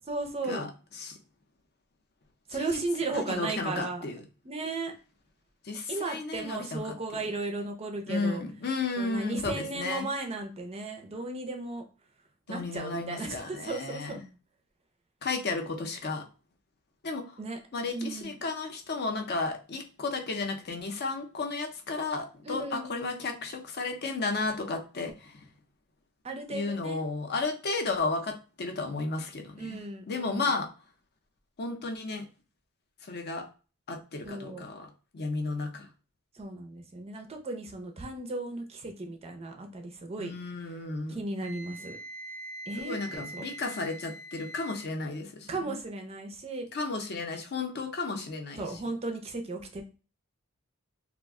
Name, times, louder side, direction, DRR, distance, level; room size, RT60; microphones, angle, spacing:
voice 1, 0.1-0.7 2.5-4.1 4.4-4.9 5.9-8.4 9.0-11.9 12.5-14.2 17.4-17.6 17.9-18.3 22.4-23.2 26.2-27.1 29.6-30.5 34.2-34.7 36.3-40.3 41.1-42.0 42.7-43.4 45.5-46.7 48.6-49.8, right 2 dB, 25° right, 4 dB, 0.4 m, -35 dB
voice 2, 3.1-4.2 5.6-7.0 8.1-10.1 12.5-14.2 15.2-16.2 17.0-17.3 17.7-25.4 26.5-29.8 30.1-30.7 31.6-32.3 33.0-33.5 33.9-35.9 40.2-41.2 42.8-45.8 46.7-48.8, left 3 dB, 45° left, 4 dB, 0.5 m, -33 dB
Wind instrument woodwind instrument, 41.4-44.9, right 1 dB, 80° left, 0.8 m, -43 dB
2.4 x 2.1 x 3.5 m, 0.34 s
head